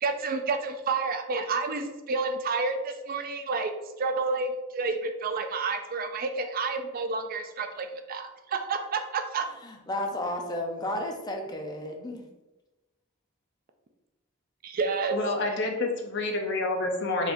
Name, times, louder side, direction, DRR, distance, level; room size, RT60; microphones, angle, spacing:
voice 1, 0.0-3.7 4.0-9.5 14.6-15.2, right 4 dB, 45° right, 6 dB, 0.4 m, -30 dB
voice 2, 9.6-12.3, left 1 dB, 20° left, 2 dB, 0.6 m, -33 dB
voice 3, 15.1-17.3, left 2 dB, 60° left, 2 dB, 0.7 m, -28 dB
4.4 x 4.0 x 2.6 m, 1.1 s
head